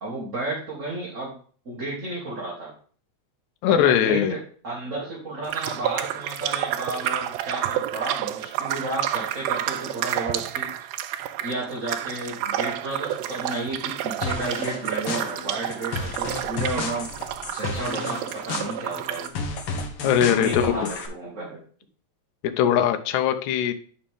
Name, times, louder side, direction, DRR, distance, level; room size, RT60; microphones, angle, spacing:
voice 1, 0.0-1.3 1.7-2.7 3.7-4.4 4.6-10.9 11.4-17.1 17.5-19.4 20.3-21.6, right 2 dB, 30° right, -6 dB, 2.2 m, -32 dB
voice 2, 3.6-4.3 20.0-20.9 22.4-23.7, left 9 dB, 85° left, 7 dB, 2.1 m, -21 dB
sound 1, 5.5-19.3, right 12 dB, 80° right, 1.7 m, -30 dB
sound 2, 14.2-21.1, left 3 dB, 55° left, 2.0 m, -33 dB
9.9 x 5.1 x 3.5 m, 0.43 s
omnidirectional pair, 3.3 m